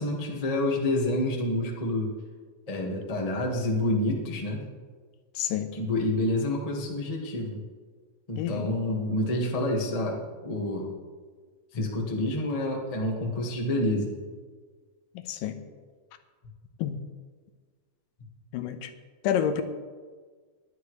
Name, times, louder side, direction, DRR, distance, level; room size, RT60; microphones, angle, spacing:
voice 1, 0.0-2.1 2.7-4.6 5.7-7.6 8.3-10.2 10.4-10.9 11.7-14.1, left 1 dB, 65° left, -1 dB, 0.3 m, -28 dB
voice 2, 5.4-5.7 8.3-8.7 15.2-15.6 16.8-17.0 18.5-18.9 19.2-19.6, left 9 dB, 80° left, 8 dB, 2.4 m, -29 dB
19.0 x 10.5 x 3.2 m, 1.5 s
omnidirectional pair, 3.9 m